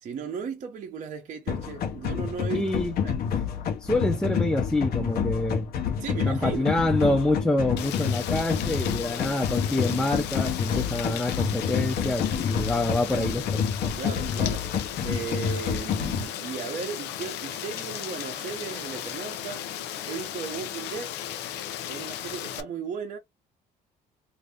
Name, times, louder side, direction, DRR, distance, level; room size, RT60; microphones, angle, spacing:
voice 1, 0.0-2.7 3.0-3.1 6.0-6.8 14.0-14.7 15.0-19.7 20.0-21.2 21.9-23.2, right 6 dB, 50° right, 0.8 m, -36 dB
sound 1, 1.5-16.2, left 7 dB, 60° left, 0.9 m, -28 dB
voice 2, 2.5-2.9 3.8-5.7 6.3-13.6, left 2 dB, 5° left, 0.6 m, -26 dB
Rain, 7.8-22.6, left 10 dB, 85° left, 0.6 m, -36 dB
2.7 x 2.6 x 3.3 m
cardioid pair, 110°, 17 cm